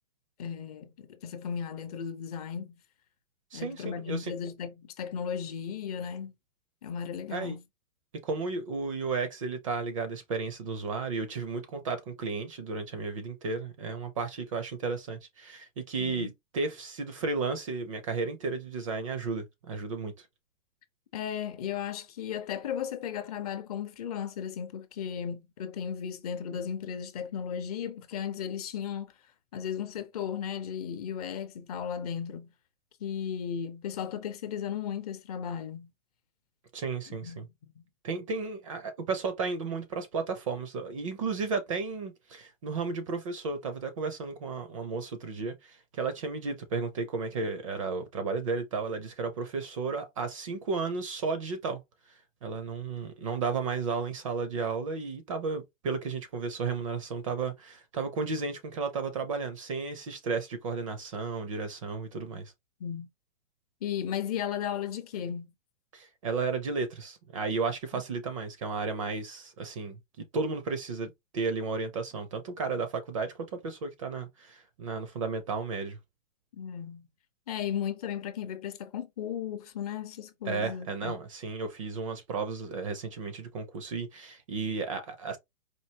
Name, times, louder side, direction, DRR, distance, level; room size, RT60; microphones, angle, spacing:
voice 1, 0.4-2.8 3.5-6.3 6.8-7.6 16.0-16.3 21.1-29.1 29.5-32.5 33.0-35.9 37.1-37.8 62.8-63.1 63.8-65.5 67.9-68.0 76.5-77.1 77.5-81.2, left 8 dB, 30° left, 0.6 m, -35 dB
voice 2, 3.5-4.3 7.3-7.6 8.2-20.3 36.7-37.5 38.0-51.8 52.1-62.5 65.9-76.0 80.5-85.4, right 4 dB, 30° right, 0.4 m, -33 dB
4.4 x 2.6 x 2.7 m
hypercardioid pair, 150°, 37 cm